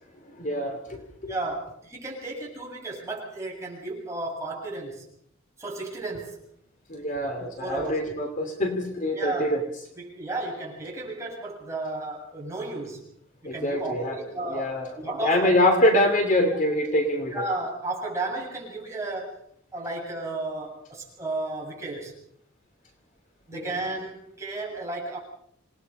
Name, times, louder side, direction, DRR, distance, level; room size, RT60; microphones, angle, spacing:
voice 1, 0.4-1.3 6.9-9.6 13.4-14.2 14.5-14.9 15.2-17.4 23.5-23.7, left 1 dB, 40° left, 4 dB, 2.9 m, -24 dB
voice 2, 1.3-5.1 5.6-6.4 7.4-8.0 9.1-9.5 9.9-13.0 13.4-15.6 16.5-16.6 17.3-19.4 19.7-22.1 23.5-25.2, right 2 dB, 15° right, -3 dB, 7.9 m, -33 dB
27.5 x 19.5 x 5.6 m, 0.70 s
head